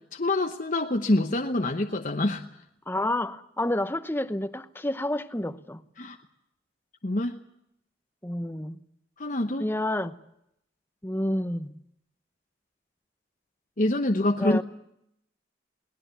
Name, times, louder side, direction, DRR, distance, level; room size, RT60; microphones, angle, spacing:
voice 1, 0.0-2.5 6.0-6.2 7.0-7.4 9.2-9.7 13.8-14.6, left 1 dB, 45° left, 4 dB, 1.0 m, -26 dB
voice 2, 2.9-5.8 8.2-8.8 9.6-10.2 11.0-11.8 14.4-14.6, left 1 dB, 15° left, 12 dB, 0.9 m, -29 dB
22.5 x 19.0 x 8.2 m, 0.78 s
head